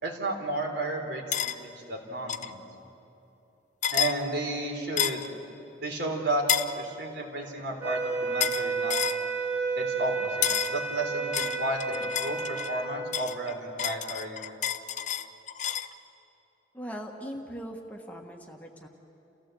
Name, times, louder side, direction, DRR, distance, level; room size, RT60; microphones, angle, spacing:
voice 1, 0.0-2.6 3.9-5.2 5.8-6.5 6.7-9.0 9.8-14.5, right 2 dB, 75° right, 1 dB, 3.5 m, -32 dB
sound 1, 1.3-1.5 2.3-2.5 3.8-4.2 5.0-5.3 6.5-6.7 8.4-8.6 8.9-9.2 10.4-10.8 11.3-12.7 13.1-15.9, left 10 dB, 45° left, 0.6 m, -29 dB
sound 2, 7.8-13.0, right 4 dB, 10° right, 2.1 m, -31 dB
voice 2, 16.7-18.9, equal, 10° left, 2 dB, 1.4 m, -40 dB
29.5 x 15.5 x 7.7 m, 2.9 s
head